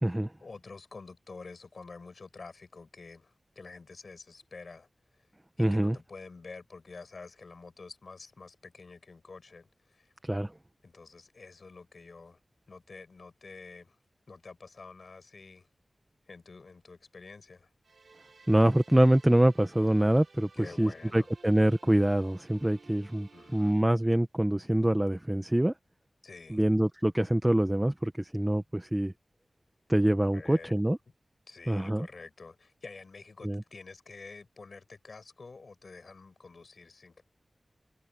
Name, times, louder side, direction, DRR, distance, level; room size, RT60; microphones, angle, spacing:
voice 1, 0.4-4.9 5.6-10.1 10.8-12.4 12.7-14.0 14.3-15.7 16.3-17.7 20.6-21.3 23.3-23.7 26.2-26.6 30.3-30.7 31.5-37.2, left 4 dB, 65° left, 5.7 m, -48 dB
voice 2, 5.6-6.0 10.2-10.5 18.5-25.7 26.5-29.1 29.9-31.0 31.7-32.1 33.4-33.6, right 1 dB, 15° right, 1.1 m, -25 dB
sound 1, 17.8-23.8, right 4 dB, 75° right, 5.3 m, -57 dB
wide cardioid pair, 95°, 0 cm